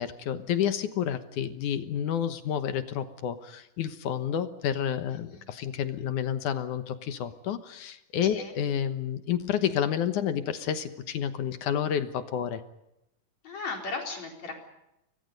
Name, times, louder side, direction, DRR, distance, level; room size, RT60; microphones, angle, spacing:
voice 1, 0.0-12.6, left 9 dB, 70° left, 10 dB, 2.6 m, -30 dB
voice 2, 5.1-5.5 8.2-8.5 13.4-14.5, left 3 dB, 55° left, 2 dB, 5.4 m, -36 dB
29.5 x 23.0 x 5.4 m, 0.84 s
omnidirectional pair, 3.8 m